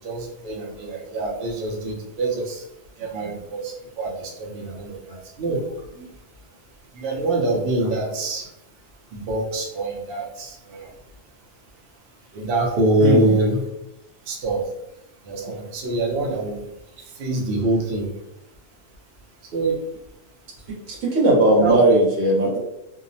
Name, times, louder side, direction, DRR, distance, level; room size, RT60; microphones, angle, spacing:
voice 1, 0.0-2.6 3.0-5.6 5.9-6.1 6.9-8.5 9.1-10.9 12.3-13.7 14.3-14.7 15.2-16.7 17.1-18.1 19.5-19.8 21.6-21.8, right 2 dB, 60° right, -1 dB, 0.7 m, -25 dB
voice 2, 20.7-22.6, right 1 dB, 85° right, -2 dB, 1.1 m, -18 dB
2.7 x 2.0 x 2.6 m, 0.88 s
omnidirectional pair, 1.3 m